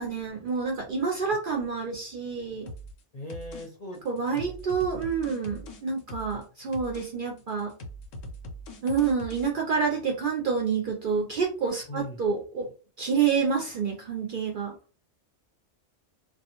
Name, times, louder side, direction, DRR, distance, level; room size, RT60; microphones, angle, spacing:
voice 1, 0.0-2.7 4.0-7.7 8.8-12.7 13.0-14.7, right 5 dB, 60° right, 1 dB, 0.6 m, -28 dB
sound 1, 2.7-3.0 3.3-3.7 3.9-6.4 6.7-7.1 7.4-9.5, equal, 90° left, 1.0 m, -41 dB
voice 2, 3.1-4.0 4.3-4.5 11.9-12.2, left 1 dB, 45° left, -1 dB, 0.6 m, -39 dB
2.3 x 2.2 x 2.8 m, 0.35 s
omnidirectional pair, 1.3 m